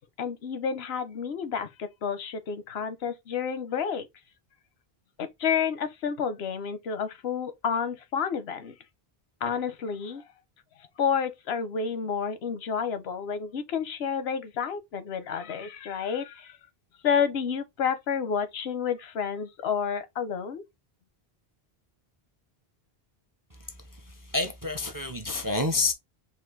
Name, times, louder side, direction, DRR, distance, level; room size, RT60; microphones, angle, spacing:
voice 1, 0.2-4.1 5.2-8.7 9.4-10.2 11.0-16.5 17.0-20.6, left 7 dB, 85° left, 1.0 m, -30 dB
voice 2, 24.1-25.9, left 3 dB, 30° right, 0.4 m, -28 dB
4.2 x 2.5 x 3.8 m
omnidirectional pair, 1.0 m